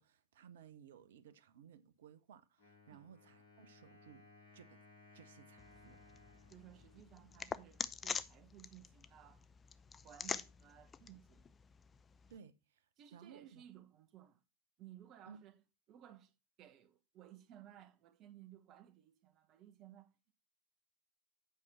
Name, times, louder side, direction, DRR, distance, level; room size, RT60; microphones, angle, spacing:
voice 1, 0.0-4.3 4.5-4.8 5.1-6.0 12.3-13.6 15.3-15.4, right 8 dB, 60° right, 0.9 m, -59 dB
Wind instrument woodwind instrument, 2.6-8.2, left 3 dB, 65° left, 4.7 m, -63 dB
sound 1, 5.6-12.4, left 6 dB, 20° left, 0.5 m, -46 dB
voice 2, 6.5-9.5 10.0-11.4 13.0-14.4 14.8-15.6 15.9-16.3 16.6-20.1, right 12 dB, 35° right, 1.2 m, -58 dB
8.6 x 6.2 x 4.2 m
figure-of-eight pair, 90°, 0 cm